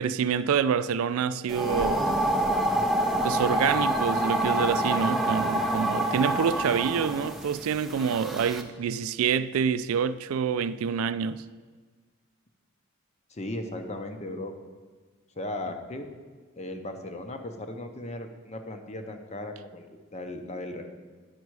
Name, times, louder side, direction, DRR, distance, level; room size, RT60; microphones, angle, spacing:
voice 1, 0.0-2.2 3.2-11.4, right 7 dB, 85° right, 0.3 m, -27 dB
sound 1, 1.5-8.6, right 1 dB, ahead, 0.5 m, -27 dB
voice 2, 13.3-14.5 15.4-16.1 16.6-20.9, left 1 dB, 30° left, 0.7 m, -37 dB
10.5 x 5.4 x 4.7 m
head